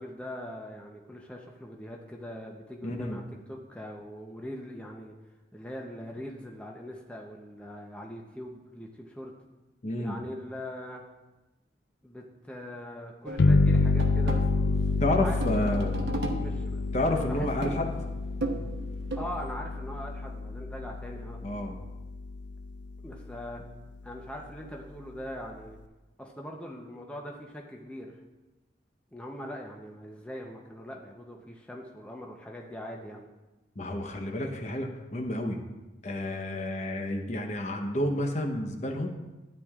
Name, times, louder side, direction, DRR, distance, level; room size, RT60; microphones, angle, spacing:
voice 1, 0.0-3.2 3.5-5.1 5.5-9.3 10.0-11.0 12.0-15.8 16.2-17.9 19.2-21.4 23.0-23.6 24.0-25.8 26.2-28.2 29.1-33.3, equal, 5° left, 0 dB, 0.7 m, -41 dB
voice 2, 2.8-3.2 9.8-10.2 15.0-15.9 16.9-17.9 21.4-21.8 33.8-35.6 36.0-39.1, left 1 dB, 40° left, 4 dB, 0.9 m, -30 dB
sound 1, 13.3-19.5, right 1 dB, 80° right, 0.9 m, -37 dB
sound 2, 13.4-22.7, left 3 dB, 85° left, 0.4 m, -28 dB
13.0 x 9.1 x 2.4 m, 1.1 s
head